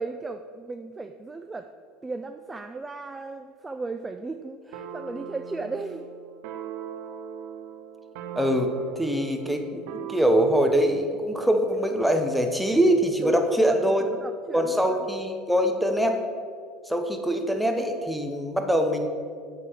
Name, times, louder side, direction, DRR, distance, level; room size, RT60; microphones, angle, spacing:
voice 1, 0.0-1.7 2.0-6.1 13.2-13.8 14.1-15.0, right 3 dB, 20° right, 8 dB, 0.3 m, -35 dB
sound 1, 4.7-11.0, right 7 dB, 70° right, 0.6 m, -39 dB
voice 2, 8.4-14.0 14.5-16.2 16.9-19.1, equal, ahead, 4 dB, 0.9 m, -23 dB
8.2 x 3.7 x 6.0 m, 2.1 s
hypercardioid pair, 85°, 0 cm